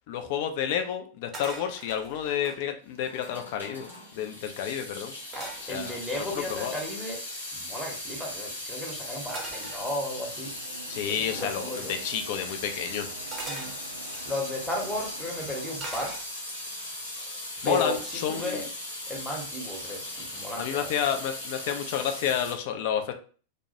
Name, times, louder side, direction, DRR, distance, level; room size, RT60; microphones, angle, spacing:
voice 1, 0.1-5.2 5.7-6.8 10.9-13.1 17.6-18.6 20.6-23.1, left 9 dB, 50° left, 6 dB, 0.4 m, -30 dB
sound 1, 1.3-2.6 3.2-3.3 3.5-4.1 5.3-6.9 9.3-10.4 11.3-11.6 13.3-14.5 15.8-16.6 17.1-17.4, right 2 dB, 25° right, 0.7 m, -42 dB
Water tap faucet / Sink (filling or washing) / Drip, 2.9-22.5, left 1 dB, 85° left, 0.9 m, -38 dB
voice 2, 5.3-7.2 7.5-10.5 11.1-12.0 13.5-13.7 14.2-16.9 17.6-18.6 19.1-20.9, left 1 dB, 5° left, -2 dB, 0.8 m, -35 dB
Printer, 9.6-15.7, right 4 dB, 75° right, 0.3 m, -47 dB
2.2 x 2.0 x 2.7 m, 0.40 s
figure-of-eight pair, 90°, 0 cm